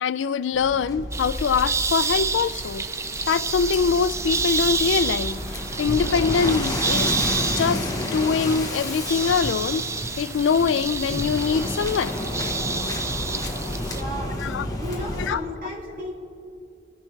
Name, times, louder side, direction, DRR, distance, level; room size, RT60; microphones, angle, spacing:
voice 1, 0.0-2.8 3.3-7.2 7.6-9.9 10.2-12.1 14.4-14.7 15.2-15.4, left 6 dB, 70° left, 16 dB, 0.4 m, -23 dB
Waves surf, 0.5-15.3, left 1 dB, 20° left, 1.2 m, -31 dB
sound 1, 1.1-14.0, right 4 dB, 15° right, 0.4 m, -29 dB
voice 2, 13.9-14.4 14.8-16.1, equal, 50° right, -3 dB, 2.8 m, -34 dB
22.0 x 9.7 x 3.2 m, 2.6 s
head